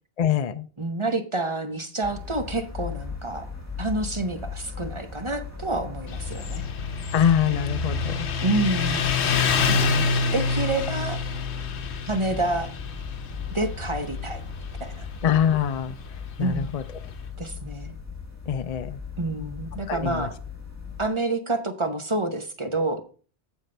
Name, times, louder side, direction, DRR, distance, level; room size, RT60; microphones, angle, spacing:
voice 1, 0.2-0.7 7.1-8.3 9.6-10.1 15.2-15.9 16.4-16.8 18.5-19.0 19.9-20.3, left 9 dB, 50° left, 10 dB, 0.5 m, -24 dB
voice 2, 0.8-3.5 3.8-6.6 8.4-9.1 9.7-9.9 10.3-11.2 12.1-12.7 13.5-14.4 14.8-15.1 16.4-16.7 17.4-18.0 19.2-20.3 21.0-23.0, right 2 dB, 30° right, 7 dB, 0.9 m, -28 dB
sound 1, 2.0-21.1, left 5 dB, 15° left, 1.6 m, -37 dB
Motorcycle, 6.1-17.2, left 5 dB, 80° left, 1.1 m, -28 dB
9.0 x 7.3 x 3.3 m, 0.39 s
omnidirectional pair, 1.1 m